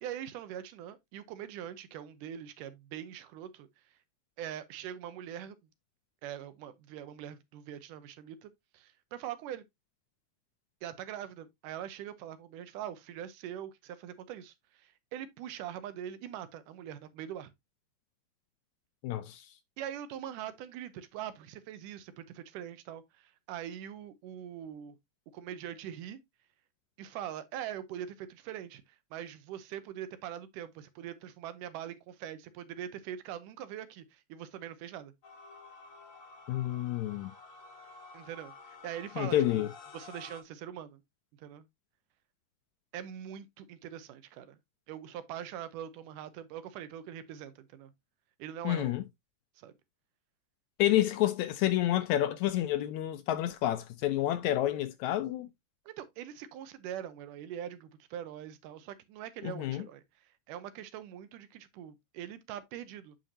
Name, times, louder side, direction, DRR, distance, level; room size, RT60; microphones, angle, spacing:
voice 1, 0.0-3.7 4.4-5.6 6.2-9.6 10.8-17.5 19.8-25.0 25.3-26.2 27.0-35.1 38.1-39.7 39.9-41.0 41.4-41.7 42.9-44.6 44.9-47.9 48.4-49.0 49.6-49.7 55.9-63.2, right 10 dB, 85° right, 2.4 m, -43 dB
voice 2, 19.0-19.5 36.5-37.3 39.2-39.7 48.6-49.0 50.8-55.5 59.4-59.8, left 13 dB, 80° left, 1.7 m, -29 dB
sound 1, 35.2-40.4, left 4 dB, 40° left, 1.2 m, -51 dB
9.1 x 5.2 x 2.7 m
omnidirectional pair, 3.7 m